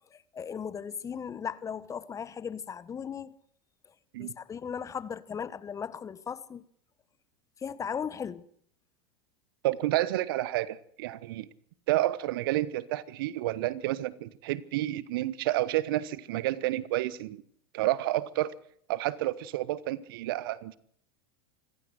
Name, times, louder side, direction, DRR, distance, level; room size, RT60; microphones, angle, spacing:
voice 1, 0.1-3.3 4.2-6.6 7.6-8.5, left 7 dB, 25° left, 1.3 m, -37 dB
voice 2, 9.6-11.5 11.9-17.4 17.7-18.6 18.9-20.8, right 15 dB, 65° right, 1.2 m, -30 dB
26.0 x 15.5 x 7.9 m
hypercardioid pair, 85°, 13 cm